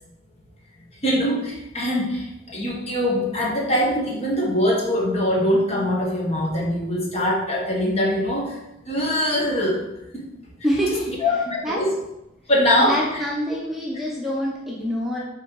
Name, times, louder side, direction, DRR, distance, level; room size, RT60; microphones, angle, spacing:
voice 1, 1.0-8.6 8.9-9.8 10.1-10.2 11.2-11.9 12.5-13.2 13.5-13.6, left 1 dB, 30° left, -2 dB, 1.5 m, -22 dB
voice 2, 10.6-11.1 11.6-11.8 12.8-15.2, equal, ahead, -5 dB, 1.0 m, -25 dB
8.5 x 3.8 x 4.8 m, 0.90 s
head